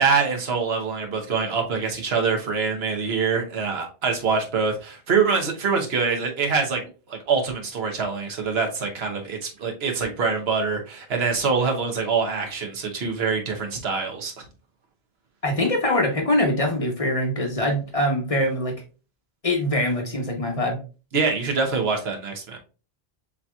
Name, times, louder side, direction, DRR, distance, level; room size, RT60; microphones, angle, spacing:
voice 1, 0.0-6.8 7.1-14.3 21.1-22.6, right 5 dB, 75° right, 3 dB, 1.1 m, -24 dB
voice 2, 15.4-18.7 19.4-20.8, left 1 dB, 35° left, 2 dB, 0.9 m, -23 dB
6.6 x 2.8 x 2.2 m, 0.33 s
omnidirectional pair, 1.1 m